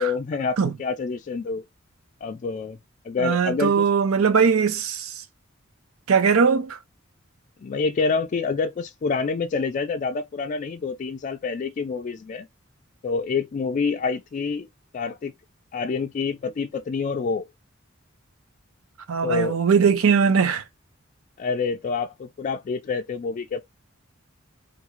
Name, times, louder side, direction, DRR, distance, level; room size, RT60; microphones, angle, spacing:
voice 1, 0.0-1.6 2.2-2.8 3.0-3.9 7.6-12.5 13.0-14.7 14.9-15.3 15.7-17.5 19.2-19.6 21.4-23.6, left 4 dB, 40° left, 0.3 m, -27 dB
voice 2, 3.2-5.1 6.1-6.8 19.1-20.6, right 6 dB, 85° right, 0.5 m, -20 dB
3.6 x 2.4 x 2.9 m
head